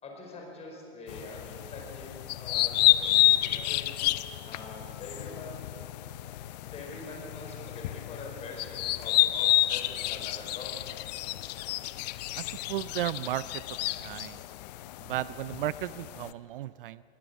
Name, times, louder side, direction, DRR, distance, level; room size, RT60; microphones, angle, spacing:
voice 1, 0.0-3.9 4.4-5.6 6.6-10.9, left 2 dB, 20° left, 1 dB, 4.7 m, -44 dB
sound 1, 1.1-16.3, left 16 dB, 40° left, 0.6 m, -30 dB
voice 2, 12.4-13.4 14.0-14.4 15.1-17.0, right 14 dB, 60° right, 18 dB, 0.5 m, -34 dB
21.0 x 19.0 x 7.0 m, 2.9 s
hypercardioid pair, 135°, 32 cm